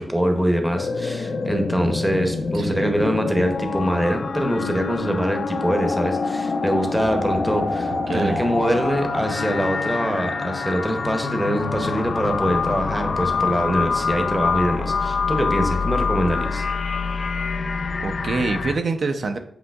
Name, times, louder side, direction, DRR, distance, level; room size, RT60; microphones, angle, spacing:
voice 1, 0.0-16.6, equal, 5° right, 4 dB, 0.6 m, -24 dB
sound 1, 0.7-18.7, left 4 dB, 55° left, 0.4 m, -26 dB
voice 2, 2.5-3.0 8.1-8.4 18.0-19.4, right 4 dB, 55° right, 6 dB, 0.3 m, -25 dB
7.7 x 2.7 x 2.2 m, 0.72 s
wide cardioid pair, 130°, 0 cm